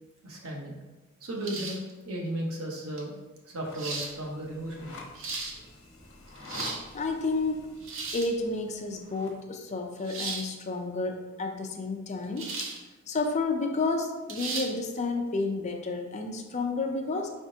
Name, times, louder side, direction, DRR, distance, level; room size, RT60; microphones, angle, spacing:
voice 1, 0.2-0.8 1.2-3.2 3.5-5.0, right 1 dB, 85° right, -1 dB, 1.0 m, -35 dB
sound 1, 1.4-1.9 3.0-3.1 3.7-4.1 4.9-5.5 6.3-6.8 7.8-8.3 10.0-10.5 12.4-12.8 13.2-13.3 14.3-14.7, right 3 dB, 65° right, 0.6 m, -35 dB
sound 2, 3.5-9.4, left 2 dB, 70° left, 1.0 m, -47 dB
voice 2, 6.9-7.7 8.1-12.5 13.1-17.3, left 3 dB, 35° left, 3 dB, 0.4 m, -31 dB
5.0 x 3.5 x 2.7 m, 1.2 s
head